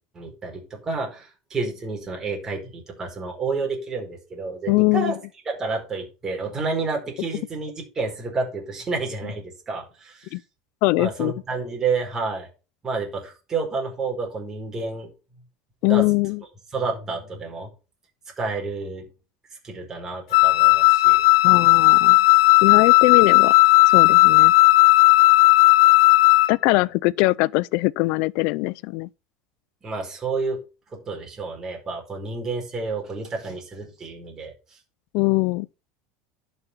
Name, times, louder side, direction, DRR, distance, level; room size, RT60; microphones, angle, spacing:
voice 1, 0.1-5.2 5.4-10.4 11.0-12.5 12.8-15.1 15.8-16.1 16.7-17.7 18.4-19.0 19.6-21.3 26.7-26.8 29.8-30.6 30.9-34.5, right 4 dB, 20° right, 4.5 m, -30 dB
voice 2, 4.7-5.1 10.3-10.4 10.8-11.3 15.8-16.4 21.4-22.2 22.6-23.5 23.9-24.5 26.5-29.1 35.1-35.7, left 23 dB, 60° left, 0.4 m, -21 dB
Wind instrument woodwind instrument, 20.3-26.5, left 21 dB, 80° left, 0.7 m, -15 dB
11.0 x 5.9 x 5.6 m
supercardioid pair, 150°, 2 cm